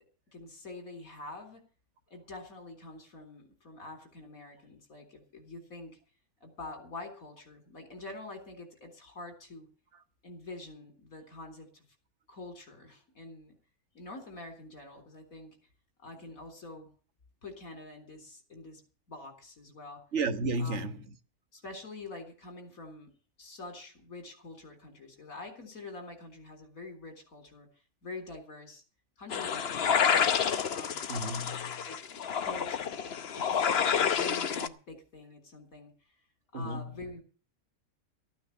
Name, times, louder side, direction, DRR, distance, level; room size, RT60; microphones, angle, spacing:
voice 1, 0.3-1.6 2.1-6.0 6.4-9.7 10.2-11.8 12.3-13.5 13.9-15.6 16.0-16.9 17.4-18.8 19.1-20.0 20.6-21.0 21.5-23.1 23.4-27.7 28.0-28.8 29.2-31.2 31.8-32.1 32.4-35.9 36.5-37.2, left 2 dB, 70° left, 4.1 m, -46 dB
voice 2, 20.1-21.0 31.1-31.9 36.5-36.9, right 2 dB, 55° right, 1.6 m, -33 dB
sound 1, 29.3-34.7, left 7 dB, 50° left, 1.0 m, -29 dB
14.5 x 9.5 x 6.9 m
omnidirectional pair, 1.5 m